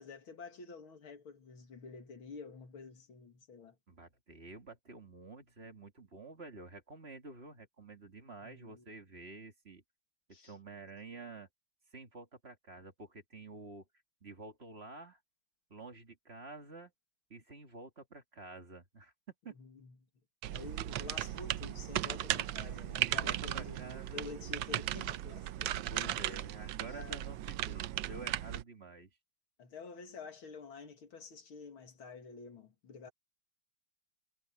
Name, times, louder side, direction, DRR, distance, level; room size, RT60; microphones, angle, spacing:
voice 1, 0.0-3.8 8.4-8.8 10.3-10.5 19.6-20.0 20.5-23.8 24.1-26.3 26.9-27.3 29.6-33.1, left 5 dB, 75° left, 2.9 m, -49 dB
voice 2, 3.9-9.8 10.3-11.5 11.9-13.8 14.2-15.2 15.7-16.9 17.3-19.1 19.4-19.6 22.6-24.3 25.9-29.1, right 3 dB, 30° right, 2.2 m, -50 dB
sound 1, 20.4-28.6, right 13 dB, 75° right, 1.3 m, -36 dB
omnidirectional pair, 2.3 m